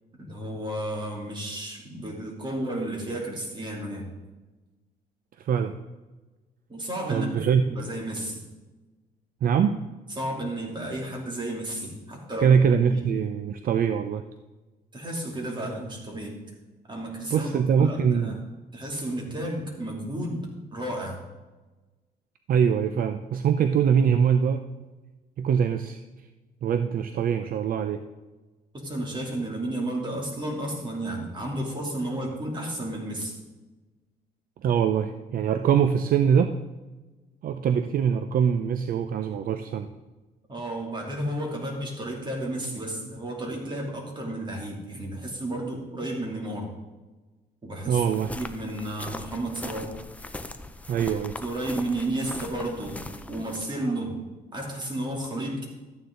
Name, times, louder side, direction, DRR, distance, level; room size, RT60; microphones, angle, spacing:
voice 1, 0.2-4.1 6.7-8.4 10.2-12.6 12.9-13.1 14.9-16.4 16.9-18.4 18.7-21.2 28.8-33.4 40.5-46.7 47.6-48.0 48.3-49.9 51.4-54.2 54.5-55.7, right 1 dB, 25° right, -1 dB, 2.8 m, -32 dB
voice 2, 5.4-5.7 7.1-7.8 9.4-9.8 12.4-14.2 17.3-18.4 22.5-24.6 25.4-26.0 26.6-28.0 34.6-36.5 37.4-39.9 47.9-48.3 50.9-51.4, right 7 dB, 60° right, 9 dB, 0.6 m, -23 dB
sound 1, 48.0-53.6, left 2 dB, 10° left, 0.6 m, -40 dB
13.0 x 9.2 x 3.8 m, 1.2 s
cardioid pair, 125°, 17 cm